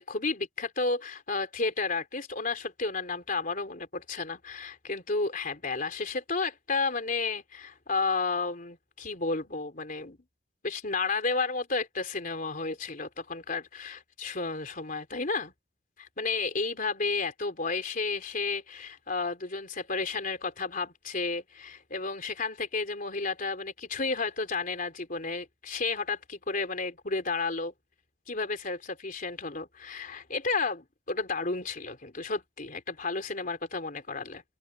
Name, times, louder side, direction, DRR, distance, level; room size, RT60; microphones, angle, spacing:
voice 1, 0.0-10.2 10.6-15.5 16.0-27.7 28.3-34.4, left 4 dB, 45° left, 3.6 m, -32 dB
open air
head